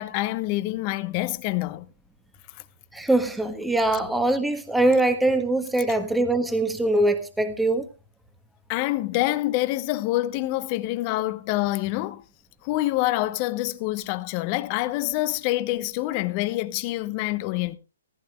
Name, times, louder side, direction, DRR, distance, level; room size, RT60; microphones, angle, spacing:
voice 1, 0.0-1.8 8.7-12.2 12.6-17.8, left 17 dB, 35° left, 1.0 m, -26 dB
voice 2, 2.9-7.9, right 2 dB, 5° right, 1.4 m, -22 dB
17.0 x 15.0 x 2.4 m
figure-of-eight pair, 125°, 0 cm